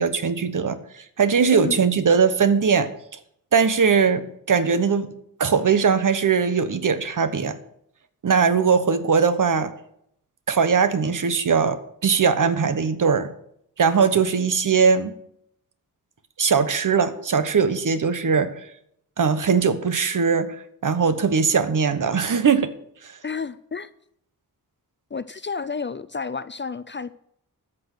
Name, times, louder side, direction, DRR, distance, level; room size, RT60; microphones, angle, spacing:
voice 1, 0.0-2.9 3.5-5.1 5.4-7.6 8.2-9.7 10.5-13.3 13.8-15.1 16.4-18.5 19.2-20.5 20.8-22.7 23.0-23.1, right 6 dB, 55° right, 11 dB, 1.1 m, -20 dB
voice 2, 23.2-23.9 25.1-27.2, left 5 dB, 30° left, 15 dB, 0.4 m, -31 dB
13.0 x 6.1 x 6.7 m, 0.71 s
wide cardioid pair, 130°, 36 cm